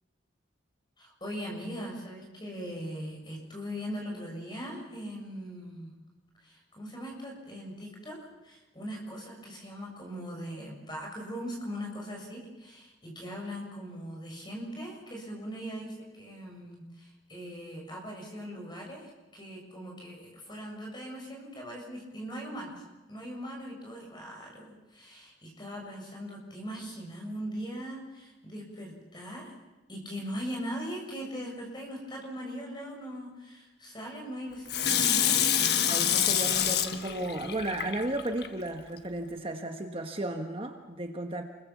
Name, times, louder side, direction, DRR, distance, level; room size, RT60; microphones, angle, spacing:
voice 1, 1.0-5.9 6.4-29.5 29.9-35.5, equal, 25° left, 0 dB, 7.0 m, -40 dB
Water tap faucet / Sink (filling or washing), 34.7-38.5 39.0-39.1, left 9 dB, 60° left, 1.5 m, -27 dB
voice 2, 35.8-41.4, right 1 dB, 30° right, 4 dB, 1.4 m, -34 dB
29.0 x 22.5 x 7.3 m, 1.1 s
head